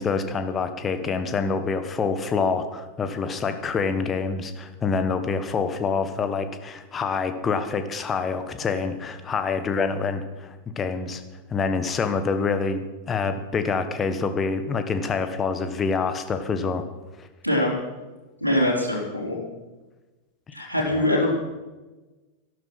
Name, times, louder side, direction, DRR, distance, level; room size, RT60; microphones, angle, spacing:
voice 1, 0.0-11.2 11.5-16.8 17.2-17.3 20.9-21.0, left 5 dB, 20° left, 9 dB, 1.4 m, -26 dB
voice 2, 18.4-19.4 20.5-21.3, left 1 dB, 85° left, -4 dB, 3.5 m, -23 dB
13.0 x 12.0 x 6.1 m, 1.2 s
figure-of-eight pair, 90°, 0 cm